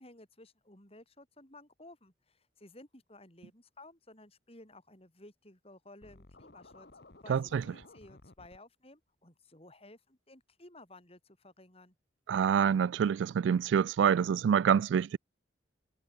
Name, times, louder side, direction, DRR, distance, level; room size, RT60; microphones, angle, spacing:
voice 1, 0.0-6.9 7.2-11.9, left 2 dB, 30° left, 6.7 m, -55 dB
Scratching (performance technique), 6.0-8.6, left 2 dB, 55° left, 1.5 m, -56 dB
voice 2, 7.3-7.6 12.3-15.2, right 7 dB, 75° right, 0.3 m, -26 dB
head